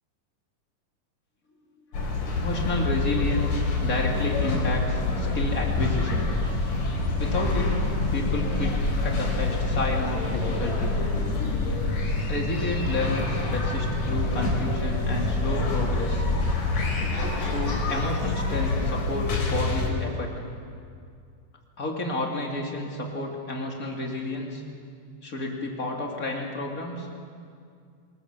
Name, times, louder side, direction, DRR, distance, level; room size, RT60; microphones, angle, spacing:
sound 1, 1.9-19.9, left 3 dB, 70° left, 5.0 m, -26 dB
voice 1, 2.2-6.3 7.2-7.8 8.1-11.0 12.3-16.2 17.4-20.3 21.8-24.6 25.2-27.1, left 2 dB, 25° left, 0 dB, 2.6 m, -31 dB
24.0 x 20.0 x 7.4 m, 2.3 s
omnidirectional pair, 3.8 m